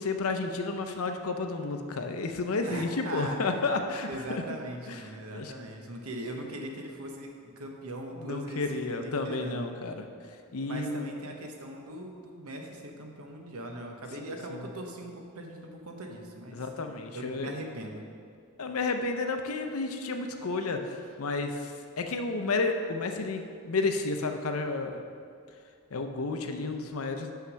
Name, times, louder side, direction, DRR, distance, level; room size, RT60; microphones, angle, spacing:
voice 1, 0.0-4.4 4.9-5.0 5.3-5.5 8.2-11.1 14.5-14.7 16.5-17.6 18.6-25.0 25.9-27.3, left 3 dB, 75° left, 5 dB, 0.7 m, -31 dB
voice 2, 2.6-3.7 4.0-9.7 10.6-16.6 17.1-18.0, right 1 dB, 80° right, 2 dB, 1.0 m, -40 dB
5.8 x 5.8 x 6.3 m, 2.2 s
head